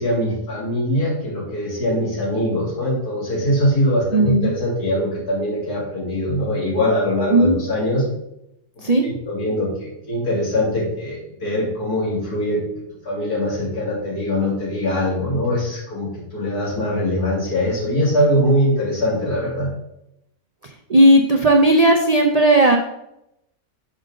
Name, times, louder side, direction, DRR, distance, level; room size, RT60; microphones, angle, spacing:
voice 1, 0.0-8.0 8.8-12.6 13.0-19.7, equal, 85° left, -5 dB, 3.0 m, -22 dB
voice 2, 4.1-4.5 7.3-7.6 8.8-9.0 20.9-22.8, right 1 dB, 80° right, 2 dB, 0.3 m, -14 dB
6.3 x 6.1 x 3.8 m, 0.83 s
omnidirectional pair, 1.6 m